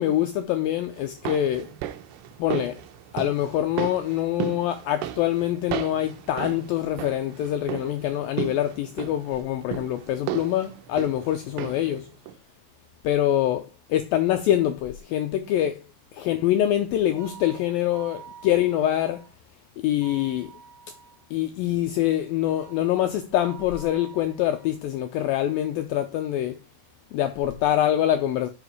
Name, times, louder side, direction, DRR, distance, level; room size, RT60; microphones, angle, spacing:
voice 1, 0.0-1.7 2.4-2.8 3.1-12.1 13.0-15.8 16.2-19.3 19.8-20.5 21.3-26.6 27.1-28.5, left 12 dB, 85° left, 2.1 m, -25 dB
sound 1, 1.0-12.0 12.3-12.4, right 12 dB, 90° right, 2.9 m, -35 dB
sound 2, 17.2-19.3 20.0-21.3 22.6-24.7, right 8 dB, 30° right, 2.7 m, -47 dB
6.6 x 5.9 x 4.8 m
omnidirectional pair, 4.8 m